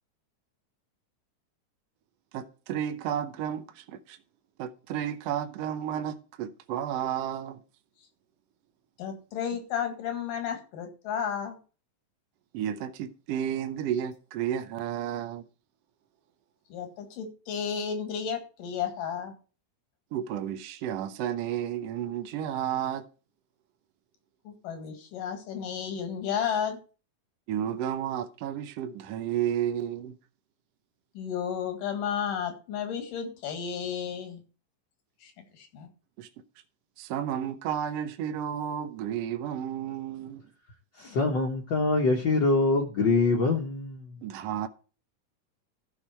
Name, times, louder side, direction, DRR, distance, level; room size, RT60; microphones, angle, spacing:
voice 1, 2.3-4.2 4.6-7.6 12.5-15.4 20.1-23.0 27.5-30.2 36.2-36.3 37.0-40.4 44.2-44.7, right 10 dB, 75° right, 1.5 m, -32 dB
voice 2, 9.0-11.6 16.7-19.3 24.5-26.8 31.2-34.4 35.2-35.3 35.6-35.9, left 7 dB, 90° left, 3.6 m, -32 dB
voice 3, 41.0-44.1, left 3 dB, 65° left, 1.1 m, -24 dB
14.0 x 5.7 x 4.3 m
omnidirectional pair, 3.7 m